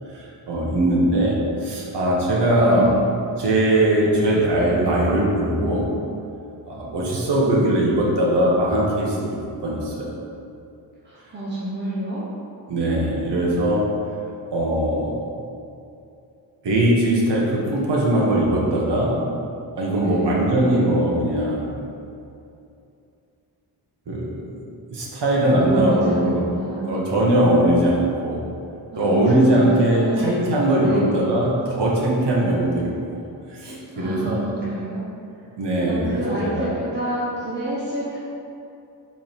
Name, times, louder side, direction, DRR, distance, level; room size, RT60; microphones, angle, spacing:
voice 1, 0.1-2.9 3.4-5.9 6.7-10.2 12.7-13.9 14.5-15.2 16.6-19.2 19.8-21.7 24.1-24.6 24.9-26.5 26.8-28.4 29.0-33.2 33.5-34.4 35.6-36.7, right 1 dB, 75° right, -4 dB, 1.4 m, -20 dB
voice 2, 2.5-3.0 11.0-12.2 20.0-20.4 25.6-26.9 28.9-30.2 30.8-31.2 33.9-35.1 35.9-38.2, right 1 dB, 25° right, -9 dB, 1.1 m, -28 dB
5.1 x 4.6 x 5.3 m, 2.6 s
wide cardioid pair, 140°, 41 cm